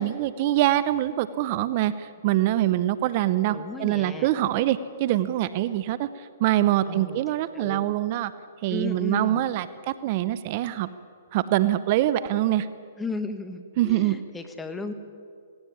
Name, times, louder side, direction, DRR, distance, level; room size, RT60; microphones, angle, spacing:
voice 1, 0.0-8.3 8.6-10.9 11.3-12.7 13.8-14.2, right 13 dB, 45° right, 15 dB, 0.8 m, -24 dB
voice 2, 3.5-4.3 6.9-7.2 7.5-7.9 8.7-9.4 13.0-14.9, left 3 dB, 10° left, 8 dB, 1.7 m, -35 dB
18.0 x 17.5 x 9.8 m, 2.2 s
hypercardioid pair, 130°, 0 cm